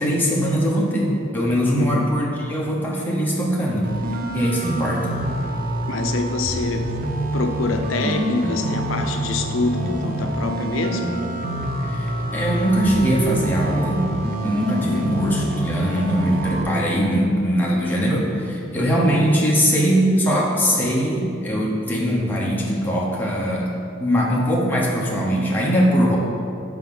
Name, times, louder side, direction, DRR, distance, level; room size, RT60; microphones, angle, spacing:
voice 1, 0.0-5.1 11.8-14.0 14.4-23.7 24.0-26.2, equal, 10° left, -4 dB, 1.0 m, -21 dB
voice 2, 1.7-2.1 5.9-6.9 7.3-11.2 14.9-15.2, left 3 dB, 85° left, 6 dB, 0.4 m, -25 dB
sound 1, 3.8-16.6, right 1 dB, 45° right, 0.6 m, -26 dB
5.7 x 4.9 x 5.8 m, 2.5 s
head